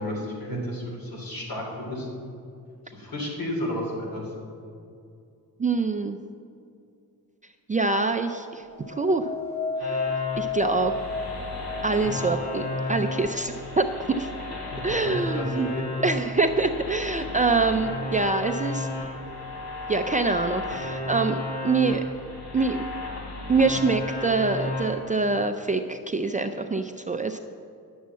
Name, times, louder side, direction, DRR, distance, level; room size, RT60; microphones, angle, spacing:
voice 1, 0.0-2.1 2.8-4.3 14.6-15.8, left 1 dB, 65° left, -1 dB, 3.3 m, -32 dB
voice 2, 5.6-6.2 7.7-9.3 9.8-10.9 11.8-13.8 14.2-14.3 14.8-15.7 16.0-18.9 19.9-22.0 22.5-22.9 23.5-27.4, right 3 dB, 20° right, 5 dB, 0.3 m, -25 dB
sound 1, 8.8-17.9 18.4-18.9, left 4 dB, 45° left, 1.2 m, -35 dB
sound 2, 9.8-24.8, left 2 dB, 85° left, 3.1 m, -33 dB
10.5 x 7.3 x 7.5 m, 2.5 s
wide cardioid pair, 145°, 37 cm